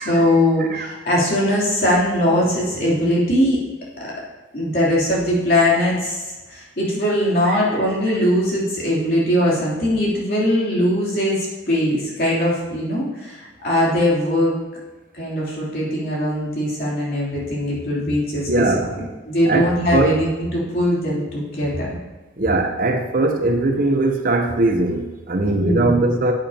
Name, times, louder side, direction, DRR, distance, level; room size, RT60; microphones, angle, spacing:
voice 1, 0.0-3.6 4.5-14.6 15.2-18.6 19.0-22.0 25.5-26.0, left 1 dB, 50° left, -6 dB, 3.4 m, -20 dB
voice 2, 18.5-19.0 19.5-20.2 22.4-26.3, right 2 dB, 45° right, 4 dB, 0.8 m, -20 dB
10.5 x 8.9 x 2.9 m, 1.2 s
head